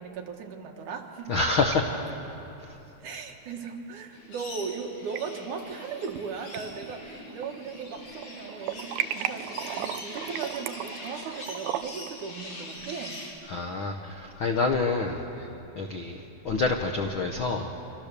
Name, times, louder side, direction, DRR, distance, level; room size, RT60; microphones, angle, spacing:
voice 1, 0.0-1.3 3.0-13.3, right 5 dB, 60° right, 2 dB, 2.9 m, -37 dB
sound 1, 1.0-1.8 2.1-2.2 3.7-3.8 4.8-5.2 5.7-6.2 6.5-7.9 8.2-12.1, right 11 dB, 75° right, 2.4 m, -35 dB
voice 2, 1.3-1.9 13.5-15.5 15.7-17.7, left 3 dB, 75° left, 3 dB, 1.1 m, -27 dB
sound 2, 4.1-13.3, left 2 dB, 50° left, 4.6 m, -42 dB
26.5 x 26.0 x 7.0 m, 2.9 s
omnidirectional pair, 4.4 m